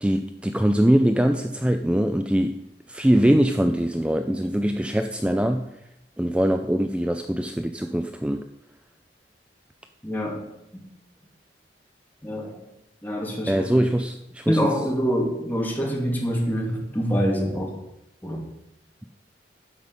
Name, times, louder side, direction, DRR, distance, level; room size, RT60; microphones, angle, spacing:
voice 1, 0.0-2.6 2.9-5.7 6.2-8.5 13.5-14.7, right 1 dB, 5° right, 7 dB, 0.4 m, -22 dB
voice 2, 10.0-10.4 12.2-12.6 13.0-13.9 14.5-17.8 18.2-18.4, equal, 10° left, -2 dB, 2.5 m, -25 dB
12.0 x 5.3 x 8.1 m, 0.87 s
head